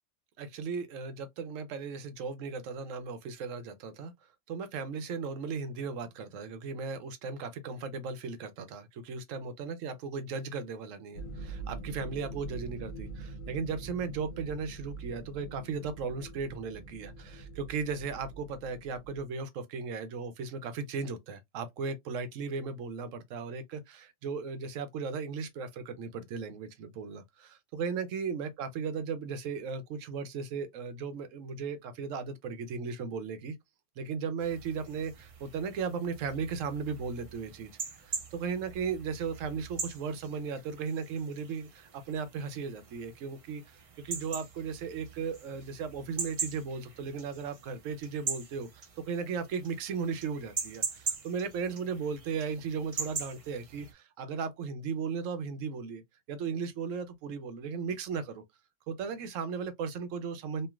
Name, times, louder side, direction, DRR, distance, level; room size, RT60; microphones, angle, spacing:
voice 1, 0.4-4.1 4.5-33.6 34.0-37.7 38.0-43.8 44.0-48.7 49.0-56.0 56.3-58.4 58.9-60.7, right 5 dB, 85° right, 1.0 m, -36 dB
sound 1, 11.1-19.2, right 3 dB, 50° left, 0.7 m, -44 dB
sound 2, 34.4-53.9, right 5 dB, 65° right, 0.3 m, -42 dB
3.1 x 2.5 x 2.3 m
omnidirectional pair, 1.3 m